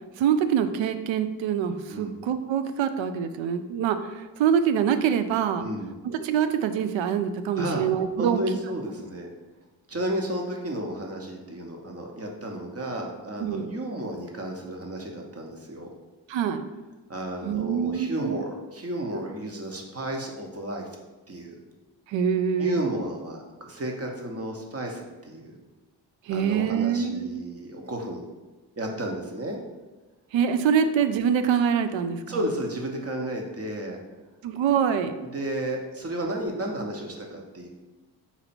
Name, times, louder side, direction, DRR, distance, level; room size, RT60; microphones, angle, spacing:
voice 1, 0.2-5.6 6.0-8.4 13.4-13.7 16.3-16.6 17.4-18.4 22.1-22.8 26.2-27.3 30.3-32.4 34.4-35.1, right 8 dB, 75° right, 9 dB, 0.5 m, -25 dB
voice 2, 5.6-5.9 7.6-7.8 8.2-9.3 9.9-15.9 17.1-20.9 21.3-21.6 22.6-25.5 26.3-28.2 28.8-29.6 32.3-34.0 35.2-37.7, right 1 dB, 30° right, 1 dB, 1.0 m, -32 dB
4.2 x 2.7 x 4.3 m, 1.2 s
supercardioid pair, 50°, 46 cm